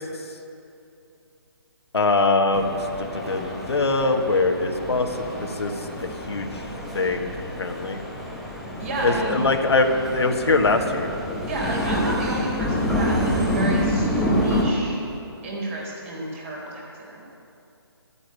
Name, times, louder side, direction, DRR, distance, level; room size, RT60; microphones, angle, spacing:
voice 1, 1.9-2.7 3.1-5.1 5.6-5.7 6.0-6.5 6.9-7.3 7.6-8.0 9.0-11.1, left 3 dB, 90° left, 3 dB, 1.6 m, -22 dB
sound 1, 2.5-14.6, equal, ahead, 1.0 m, -28 dB
voice 2, 8.8-9.5 11.5-15.0 15.4-17.2, right 2 dB, 30° right, -3 dB, 4.0 m, -30 dB
13.0 x 8.8 x 9.6 m, 2.7 s
hypercardioid pair, 165°, 14 cm